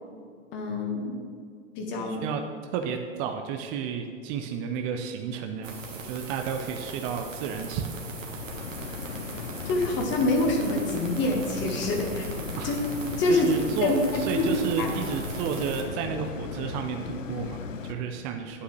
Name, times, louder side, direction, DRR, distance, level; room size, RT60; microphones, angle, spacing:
voice 1, 0.5-1.2 1.7-2.2 9.6-12.3 12.6-12.8 13.2-13.5 13.8-14.5 14.8-14.9, left 2 dB, 30° left, 1 dB, 1.5 m, -26 dB
voice 2, 2.1-2.4 2.7-7.9 8.2-8.4 12.5-12.7 13.3-18.6, right 7 dB, 25° right, 5 dB, 0.5 m, -32 dB
sound 1, 5.6-15.8, right 3 dB, 85° right, 1.6 m, -40 dB
sound 2, 6.8-17.9, left 6 dB, 90° left, 0.7 m, -37 dB
9.5 x 8.4 x 3.3 m, 2.1 s
hypercardioid pair, 120°, 38 cm